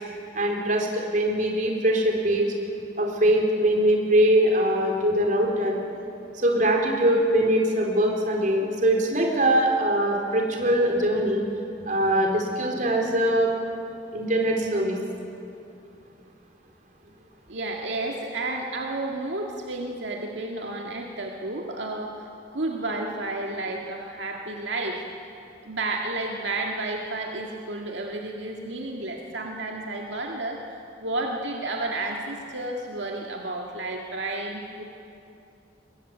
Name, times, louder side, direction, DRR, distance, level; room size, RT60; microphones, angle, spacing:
voice 1, 0.3-2.5 3.0-5.8 6.3-11.5 11.8-13.5 14.1-15.0, right 1 dB, 45° right, 0 dB, 4.2 m, -22 dB
voice 2, 17.5-25.0 25.6-34.8, right 2 dB, 75° right, 0 dB, 1.9 m, -31 dB
22.5 x 22.0 x 9.1 m, 2.7 s
head